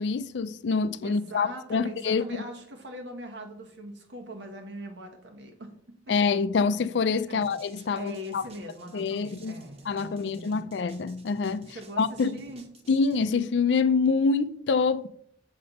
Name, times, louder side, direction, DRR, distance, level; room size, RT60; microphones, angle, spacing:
voice 1, 0.0-2.4 6.1-8.4 8.9-12.4 12.9-15.1, left 4 dB, 70° left, 0.4 m, -26 dB
voice 2, 1.0-5.7 6.1-6.2 7.3-7.5 7.9-10.7 11.7-12.6, equal, 75° right, 1.4 m, -41 dB
sound 1, 7.4-13.3, right 3 dB, 35° right, 0.8 m, -53 dB
7.3 x 3.4 x 5.7 m
head